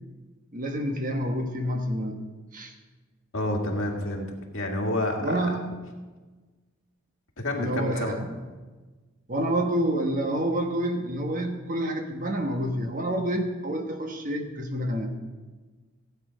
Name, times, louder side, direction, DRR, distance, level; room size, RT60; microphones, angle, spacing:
voice 1, 0.5-2.2 2.5-2.7 5.2-5.6 7.6-8.2 9.3-15.1, right 1 dB, 40° right, 4 dB, 1.3 m, -28 dB
voice 2, 3.3-4.3 4.5-5.5 7.4-8.2, left 1 dB, 65° left, 0 dB, 2.1 m, -28 dB
16.0 x 8.9 x 5.2 m, 1.3 s
head